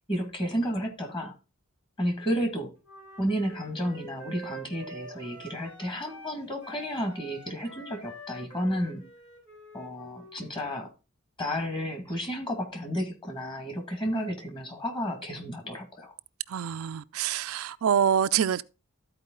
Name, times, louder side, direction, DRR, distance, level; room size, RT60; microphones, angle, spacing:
voice 1, 0.1-1.4 2.0-2.7 3.2-9.0 9.7-10.9 11.4-16.1, equal, 25° left, 2.0 m, -32 dB
Wind instrument woodwind instrument, 2.8-6.4 6.6-10.5, right 1 dB, 55° left, 6.3 m, -46 dB
voice 2, 16.5-18.6, right 8 dB, 75° right, 0.4 m, -26 dB
13.5 x 4.6 x 3.8 m
head